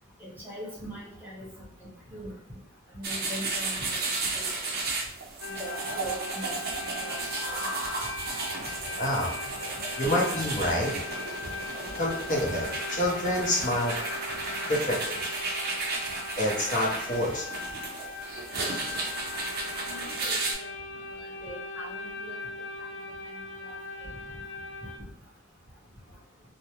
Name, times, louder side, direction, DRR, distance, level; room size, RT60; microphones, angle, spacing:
voice 1, 0.2-1.5 1.8-2.3 2.9-4.0 4.3-4.5 5.6-5.7 5.9-6.5 6.8-7.2 7.4-7.6 12.4-12.5 18.5-18.6 19.9-20.4 21.2-22.4 23.7-23.8, left 1 dB, 10° right, -6 dB, 0.9 m, -41 dB
sound 1, 3.0-20.5, right 3 dB, 50° right, 0.5 m, -34 dB
sound 2, 5.4-25.0, left 3 dB, 85° left, 0.4 m, -39 dB
voice 2, 9.0-9.3 10.0-10.9 12.0-13.9 14.7-15.2 16.4-17.4, left 1 dB, 40° left, -3 dB, 0.7 m, -27 dB
2.5 x 2.1 x 2.9 m, 0.74 s
head